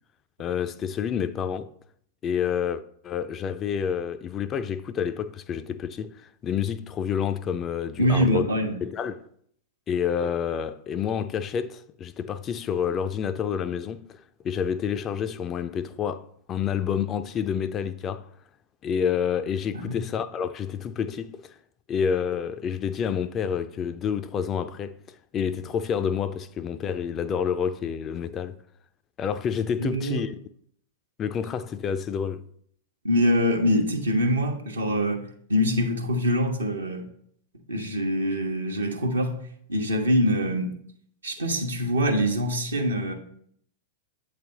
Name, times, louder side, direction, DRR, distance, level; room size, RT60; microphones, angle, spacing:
voice 1, 0.4-1.7 2.2-8.5 8.8-9.2 9.9-14.0 14.4-18.3 18.8-21.6 21.9-28.6 29.2-30.4 31.2-32.4, left 7 dB, 30° left, 0.3 m, -28 dB
voice 2, 8.0-8.8 19.7-20.0 29.8-30.2 33.0-37.1 37.7-39.4 39.7-40.7 41.2-43.1, equal, 85° right, 0.9 m, -24 dB
7.9 x 3.3 x 3.8 m
figure-of-eight pair, 100°, 0 cm